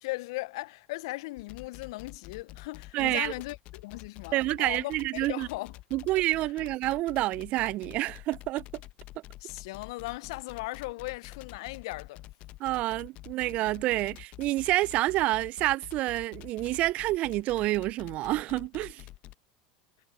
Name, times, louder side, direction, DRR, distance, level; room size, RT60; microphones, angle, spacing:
voice 1, 0.0-5.7 9.4-12.2, left 21 dB, 70° left, 0.5 m, -38 dB
sound 1, 1.4-19.4, left 17 dB, 50° left, 1.0 m, -47 dB
voice 2, 2.9-3.3 4.3-5.5 5.9-8.6 12.6-19.0, right 17 dB, 50° right, 0.4 m, -28 dB
hypercardioid pair, 85°, 3 cm